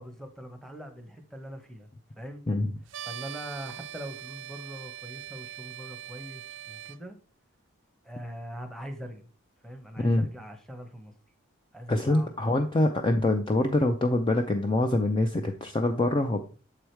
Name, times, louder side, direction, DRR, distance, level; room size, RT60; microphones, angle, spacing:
voice 1, 0.0-1.9 2.2-2.4 3.0-7.2 8.0-9.3 9.6-11.1 11.7-12.3, equal, ahead, 6 dB, 0.9 m, -42 dB
sound 1, 2.9-7.0, right 11 dB, 60° right, 0.4 m, -42 dB
voice 2, 11.9-16.4, left 2 dB, 20° left, 5 dB, 0.4 m, -25 dB
7.1 x 4.9 x 4.5 m, 0.38 s
head